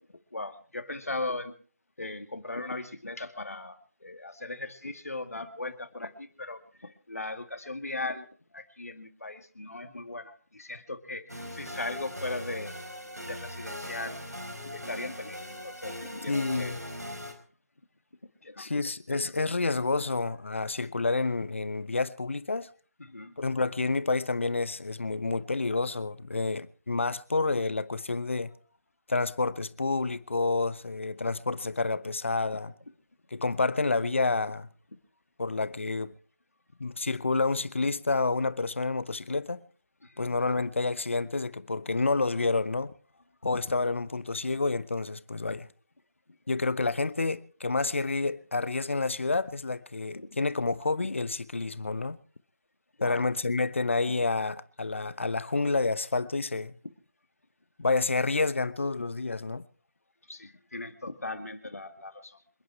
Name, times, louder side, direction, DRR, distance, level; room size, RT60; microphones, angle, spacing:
voice 1, 0.1-1.5 2.0-8.3 8.5-12.7 13.2-14.2 14.6-16.8 18.4-18.7 19.1-19.3 23.0-23.3 40.0-40.3 50.1-50.3 53.0-53.2 60.3-62.4, left 2 dB, 65° left, 2.2 m, -38 dB
sound 1, 11.3-17.3, equal, 90° right, 4.3 m, -40 dB
voice 2, 16.3-16.8 18.6-22.7 23.4-28.5 29.1-32.7 33.3-34.7 35.4-36.1 36.8-39.6 40.2-42.9 43.4-45.7 46.5-52.2 53.0-56.7 57.8-59.6, left 3 dB, 50° left, 1.0 m, -29 dB
27.0 x 9.5 x 4.6 m
figure-of-eight pair, 160°, 9 cm